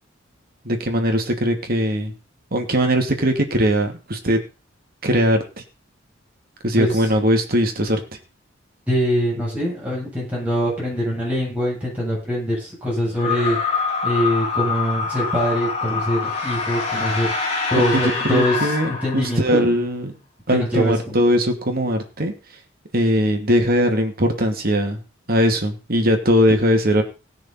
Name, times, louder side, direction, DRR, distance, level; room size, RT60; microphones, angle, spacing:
voice 1, 0.6-2.1 2.5-4.4 5.0-5.4 6.6-8.0 17.8-20.1 20.5-22.3 22.9-25.0 25.3-27.0, equal, 50° right, 4 dB, 2.6 m, -20 dB
voice 2, 8.9-13.6 14.0-17.3 17.7-19.7 20.5-21.2, equal, 5° right, -4 dB, 7.9 m, -23 dB
sound 1, 13.1-19.6, left 4 dB, 35° left, 4.0 m, -25 dB
17.5 x 6.5 x 5.7 m, 0.32 s
head